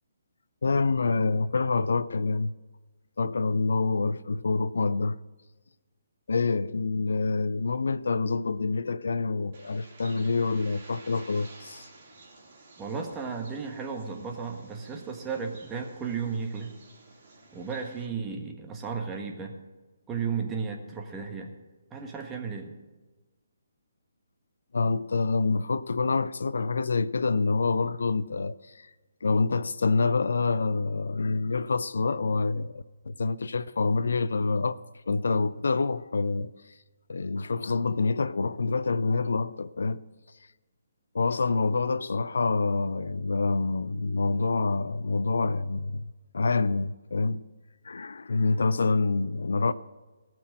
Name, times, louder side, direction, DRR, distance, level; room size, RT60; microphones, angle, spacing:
voice 1, 0.6-2.5 3.2-5.2 6.3-11.9 24.7-28.9 29.2-34.8 35.1-36.8 37.1-40.0 41.1-47.4 47.8-49.7, left 3 dB, 65° left, 0.4 m, -27 dB
Bird, 9.5-18.0, right 3 dB, 45° right, 3.7 m, -52 dB
voice 2, 12.8-16.7 17.5-19.6 20.1-21.5 21.9-22.8, right 5 dB, 15° right, 1.6 m, -34 dB
18.0 x 6.1 x 7.5 m
figure-of-eight pair, 140°, 0 cm